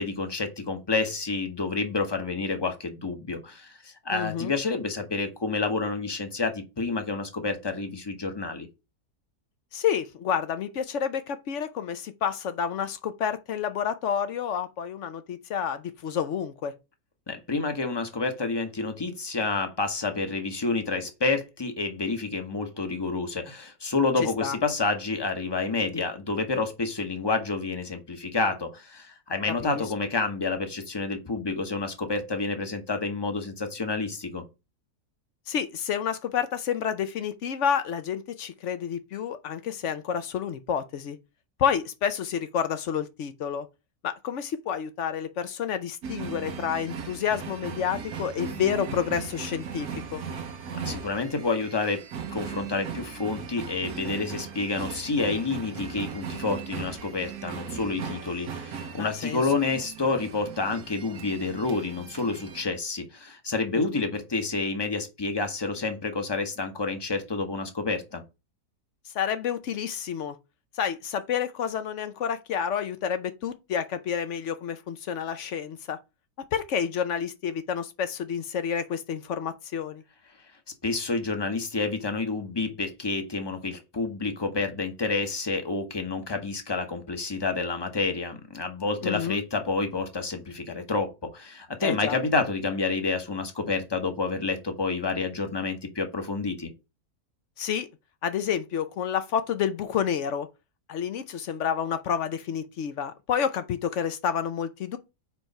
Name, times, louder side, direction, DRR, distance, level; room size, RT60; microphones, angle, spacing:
voice 1, 0.0-8.7 17.3-34.4 50.8-52.0 52.3-68.2 80.8-96.7, left 3 dB, 20° left, 0.9 m, -29 dB
voice 2, 4.1-4.5 9.7-16.7 24.2-24.6 29.5-29.8 35.5-41.2 41.6-43.7 44.0-50.2 59.0-59.4 63.8-64.0 69.1-70.4 70.8-76.0 76.5-80.0 89.0-89.4 91.8-92.2 97.6-97.9 98.2-100.5 100.9-105.0, left 8 dB, 60° left, 0.9 m, -29 dB
sound 1, 46.0-62.6, right 6 dB, 80° right, 1.3 m, -38 dB
4.5 x 4.5 x 5.3 m
omnidirectional pair, 1.6 m